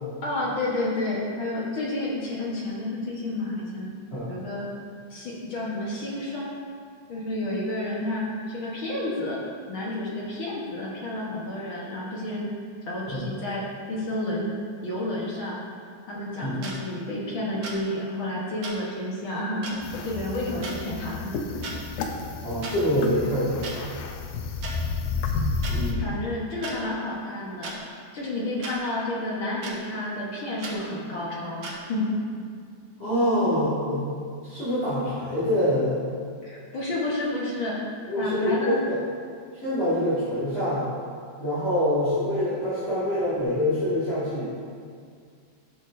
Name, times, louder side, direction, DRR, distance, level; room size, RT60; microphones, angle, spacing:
voice 1, 0.2-3.9 4.3-4.7 5.1-6.5 7.1-9.4 9.7-12.5 12.9-13.6 13.9-14.5 14.8-15.6 16.1-21.8 25.9-27.8 28.1-32.0 36.4-37.8 38.2-38.8, left 1 dB, 55° left, -6 dB, 1.5 m, -30 dB
sound 1, 16.6-16.7 17.6-17.8 18.6-18.7 19.6-19.7 20.6-20.8 21.5-21.8 22.6-22.7 23.6-23.7 24.6-24.7 25.6-25.7 26.6-26.7 27.6-27.8 28.6-28.8 29.6-29.7 30.6-30.8 31.6-31.7, right 3 dB, 65° right, 2.1 m, -36 dB
sound 2, 19.8-25.9, left 4 dB, 85° left, 2.2 m, -31 dB
voice 2, 22.4-23.7 25.7-26.1 33.0-34.1 34.4-35.9 38.1-39.0 39.5-40.9 41.4-44.5, equal, 20° left, -14 dB, 2.0 m, -25 dB
13.0 x 6.1 x 2.6 m, 2.2 s
omnidirectional pair, 3.6 m